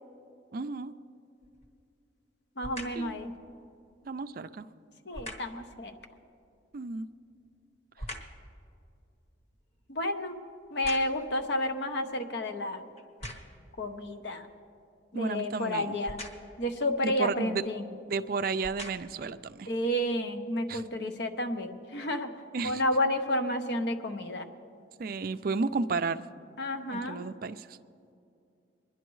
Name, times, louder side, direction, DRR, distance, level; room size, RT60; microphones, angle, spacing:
voice 1, 0.5-0.9 2.9-3.2 4.1-4.7 6.7-7.1 15.1-16.0 17.0-17.6 17.9-19.7 20.7-20.8 22.5-22.8 25.0-26.2 26.9-27.8, right 4 dB, 50° right, 12 dB, 0.4 m, -32 dB
sound 1, 1.4-1.8 2.6-3.1 5.1-5.6 7.0-8.5 8.9-11.4 12.1-12.2 13.0-13.7 16.0-16.6 17.6-17.8 18.4-19.3 19.9-20.0, equal, 35° left, 1.1 m, -44 dB
voice 2, 2.6-3.3 5.1-5.9 9.9-10.4 10.7-12.8 13.8-14.5 15.1-16.2 16.6-17.8 19.7-22.3 22.6-24.5 26.6-27.3, left 1 dB, 65° left, 6 dB, 0.9 m, -31 dB
26.0 x 11.0 x 3.1 m, 2.6 s
head